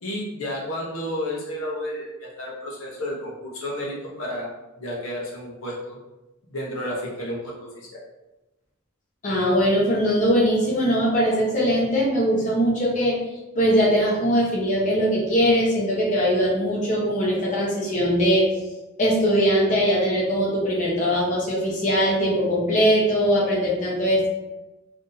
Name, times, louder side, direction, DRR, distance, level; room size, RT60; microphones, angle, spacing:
voice 1, 0.0-4.5 4.8-6.0 6.5-8.0, left 1 dB, 70° left, -3 dB, 0.8 m, -31 dB
voice 2, 9.2-13.2 13.5-18.4 19.0-24.3, equal, 35° left, -5 dB, 0.8 m, -21 dB
2.7 x 2.6 x 3.8 m, 1.0 s
head